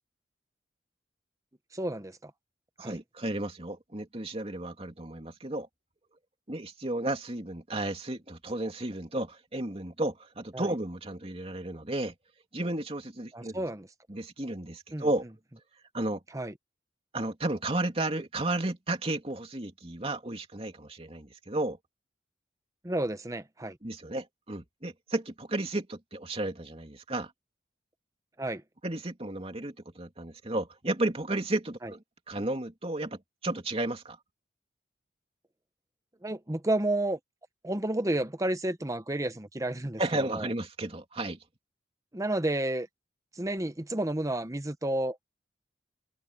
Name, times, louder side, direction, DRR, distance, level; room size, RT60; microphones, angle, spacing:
voice 1, 1.7-2.3 2.8-3.0 10.5-10.7 13.3-13.9 14.9-15.1 16.3-16.5 22.8-23.8 28.4-28.6 31.8-31.9 36.2-37.2 37.6-40.0 40.3-40.5 42.1-42.9 43.4-45.2, right 1 dB, 20° right, 1.0 m, -31 dB
voice 2, 2.8-5.7 6.5-12.1 12.5-13.6 14.1-15.2 15.9-16.2 17.1-21.8 23.8-27.3 28.8-34.2 40.0-41.4, right 2 dB, 35° right, 2.7 m, -33 dB
head